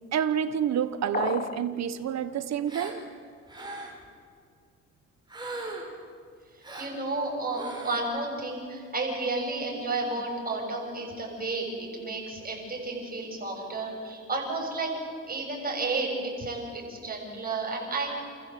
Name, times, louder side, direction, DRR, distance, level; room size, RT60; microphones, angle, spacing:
voice 1, 0.1-3.0, right 8 dB, 60° right, 1.2 m, -28 dB
sound 1, 1.1-1.7, left 6 dB, 25° left, 0.5 m, -31 dB
Gasp, 2.7-3.0 3.5-4.1 5.3-6.0 6.6-7.0 7.5-8.0, right 2 dB, 15° right, 5.1 m, -39 dB
voice 2, 6.5-14.9 15.3-18.1, right 3 dB, 30° right, 7.4 m, -32 dB
29.0 x 14.0 x 7.8 m
cardioid pair, 90°, 30 cm